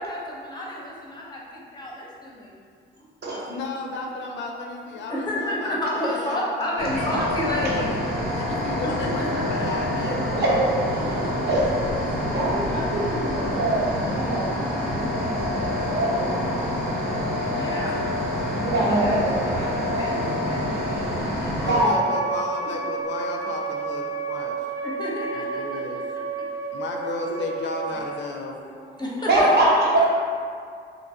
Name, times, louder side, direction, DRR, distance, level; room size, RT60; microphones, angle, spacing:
voice 1, 0.0-2.6 3.0-3.3 5.1-8.0 8.2-8.4 8.8-9.7 10.9-11.3 15.2-15.3 17.4-18.1 18.8-22.3 22.6-22.8 24.8-26.0 26.4-26.5 27.1-27.3 28.5-29.7 30.0-30.1, left 1 dB, 20° left, -4 dB, 0.6 m, -32 dB
voice 2, 3.5-7.2 7.7-7.9 8.3-10.7 21.6-24.6 25.3-26.0 26.7-28.6, left 3 dB, 65° left, 1 dB, 0.4 m, -34 dB
sound 1, 6.8-21.8, left 1 dB, 85° right, 1.0 m, -27 dB
voice 3, 10.3-10.7 11.5-11.6 12.2-16.7 18.5-19.3 19.8-20.0 21.7-22.0 29.3-29.7 29.9-30.1, right 1 dB, 55° right, -5 dB, 0.8 m, -24 dB
Wind instrument woodwind instrument, 21.6-28.2, right 4 dB, 15° right, 0.7 m, -31 dB
2.7 x 2.5 x 2.7 m, 2.1 s
cardioid pair, 90°, 20 cm